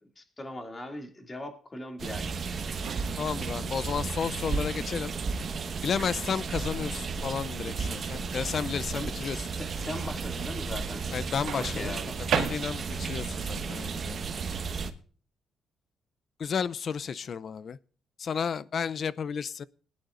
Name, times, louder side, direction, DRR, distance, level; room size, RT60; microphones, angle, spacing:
voice 1, 0.0-2.3 8.9-11.0 11.6-12.2, left 1 dB, 25° left, 2.5 m, -40 dB
sound 1, 2.0-14.9, right 5 dB, 45° right, 1.4 m, -34 dB
Microwave oven, 2.8-3.5 5.4-5.7 11.5-13.1, right 7 dB, 70° right, 2.1 m, -33 dB
voice 2, 3.2-5.1 5.8-9.4 11.1-12.0 12.3-14.2 16.4-17.8 18.2-19.7, left 6 dB, 50° left, 0.5 m, -32 dB
20.5 x 11.0 x 2.5 m
cardioid pair, 90°, 0 cm